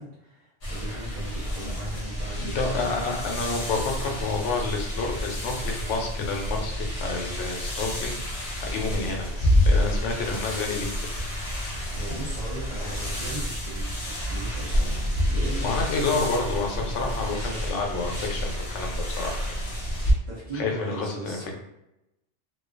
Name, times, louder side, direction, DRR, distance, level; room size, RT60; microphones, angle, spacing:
voice 1, 0.0-2.9 11.9-16.3 17.0-18.2 20.3-21.5, right 2 dB, 45° right, -9 dB, 0.5 m, -38 dB
sound 1, 0.6-20.1, equal, 50° left, 0.5 m, -29 dB
voice 2, 2.4-11.1 15.6-19.6 20.5-21.5, left 3 dB, 80° left, 1 dB, 0.9 m, -29 dB
2.3 x 2.2 x 2.4 m, 0.88 s
omnidirectional pair, 1.2 m